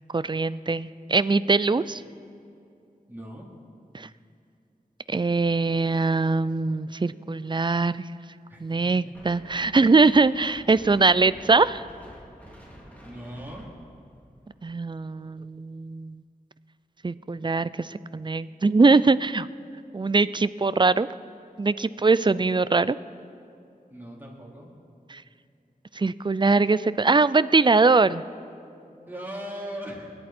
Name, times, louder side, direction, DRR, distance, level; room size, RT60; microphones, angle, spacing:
voice 1, 0.1-2.0 3.9-4.1 5.1-8.0 8.6-11.8 14.6-16.2 17.0-19.5 19.9-21.1 21.6-23.0 25.1-25.2 25.9-28.2, right 3 dB, 30° right, 16 dB, 0.4 m, -22 dB
voice 2, 3.1-3.5 8.5-9.1 10.0-10.2 13.0-13.7 23.9-24.7 28.6-30.1, equal, 15° right, -4 dB, 3.8 m, -40 dB
Wind, 9.1-14.6, equal, 10° left, 3.1 m, -49 dB
26.5 x 11.0 x 4.4 m, 2.6 s
wide cardioid pair, 60°, 15 cm